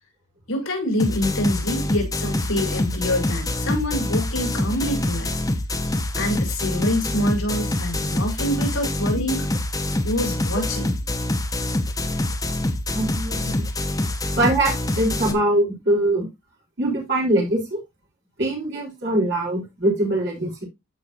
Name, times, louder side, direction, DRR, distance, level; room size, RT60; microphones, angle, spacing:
voice 1, 0.5-5.3 6.1-9.5 10.0-10.9 13.4-13.5, left 1 dB, 75° left, 4.8 m, -26 dB
sound 1, 1.0-15.3, left 1 dB, 15° left, 0.8 m, -25 dB
voice 2, 12.9-13.5 14.4-16.3 16.8-17.8 18.4-20.6, right 1 dB, 50° right, 3.7 m, -22 dB
13.5 x 5.0 x 2.6 m
head